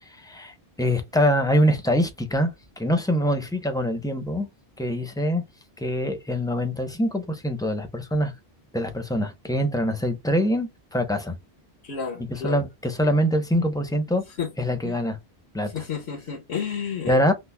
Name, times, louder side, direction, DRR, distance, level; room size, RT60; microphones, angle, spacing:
voice 1, 0.2-2.5 2.8-4.5 4.8-5.4 5.8-8.3 8.7-11.3 12.3-14.2 14.6-15.2 15.5-15.8 17.0-17.3, equal, 5° left, 0.6 m, -24 dB
voice 2, 11.8-12.6 14.4-14.5 14.8-15.0 15.7-17.2, left 6 dB, 85° left, 1.4 m, -31 dB
6.0 x 2.1 x 2.2 m
omnidirectional pair, 1.1 m